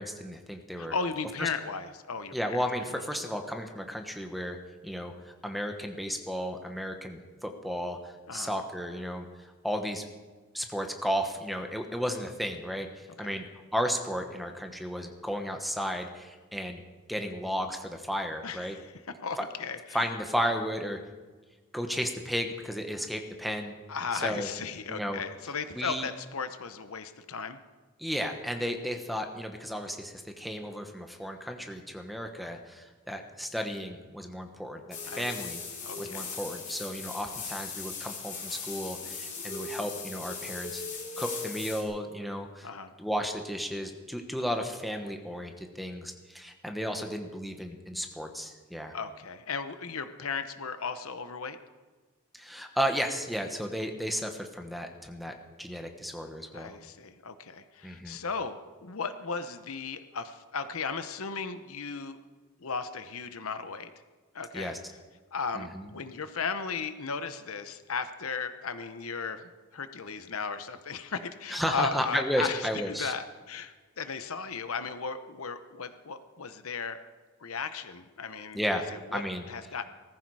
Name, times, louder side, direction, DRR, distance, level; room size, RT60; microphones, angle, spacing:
voice 1, 0.0-1.0 1.4-1.5 2.3-4.6 4.8-10.1 10.5-16.8 17.1-18.8 19.4-19.5 19.9-21.0 21.7-23.7 24.1-24.5 24.9-25.2 25.7-26.1 28.0-35.6 36.0-40.8 41.2-42.7 43.0-48.9 52.3-56.8 57.8-58.2 64.5-64.8 65.5-65.9 71.5-73.1 78.5-78.8 79.1-79.5, equal, ahead, 5 dB, 1.2 m, -34 dB
voice 2, 0.8-2.6 2.9-3.0 8.3-8.5 13.2-13.4 18.4-20.1 23.9-27.6 35.1-35.3 35.8-36.3 42.6-42.9 48.9-51.6 56.5-62.2 62.6-63.9 64.3-64.7 65.3-77.0 77.4-78.6 78.9-79.8, left 5 dB, 70° left, 11 dB, 0.9 m, -36 dB
sound 1, 34.9-41.8, left 4 dB, 35° left, 3.1 m, -38 dB
19.0 x 14.5 x 4.8 m, 1.3 s
head